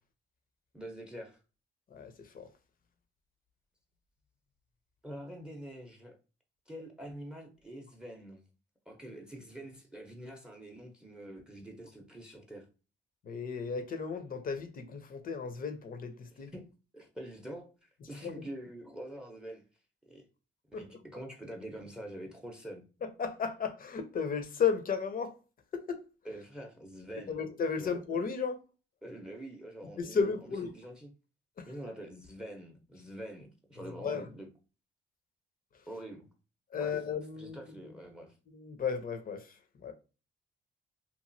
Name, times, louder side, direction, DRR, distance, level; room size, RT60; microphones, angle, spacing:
voice 1, 0.7-1.4 5.0-6.1 6.7-8.4 8.9-12.7 16.3-16.6 16.9-19.6 20.1-20.2 20.7-22.8 26.2-27.4 27.8-28.0 29.0-31.1 31.7-34.5 35.9-36.3 36.7-36.9 37.4-38.3, right 1 dB, 5° right, 0.7 m, -45 dB
voice 2, 1.9-2.5 13.2-16.5 18.2-18.3 20.7-20.8 23.0-25.3 25.7-26.0 27.3-28.6 30.0-30.7 31.6-31.7 34.0-34.2 36.7-37.6 38.5-39.6 39.8-39.9, left 6 dB, 45° left, 0.7 m, -34 dB
3.0 x 2.4 x 2.6 m
cardioid pair, 90°, 20 cm